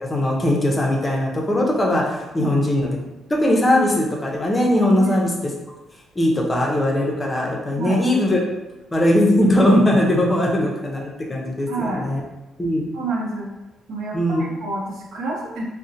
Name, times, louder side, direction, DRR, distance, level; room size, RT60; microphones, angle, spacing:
voice 1, 0.0-3.0 3.3-5.3 6.2-8.4 8.9-11.0 11.3-12.2 12.6-12.9 14.1-14.4, left 1 dB, 20° left, -1 dB, 0.6 m, -19 dB
voice 2, 7.7-8.0 11.7-12.1 12.9-13.5 13.9-15.6, right 2 dB, 75° right, -2 dB, 0.6 m, -28 dB
2.6 x 2.1 x 2.6 m, 1.0 s
cardioid pair, 90°, 0 cm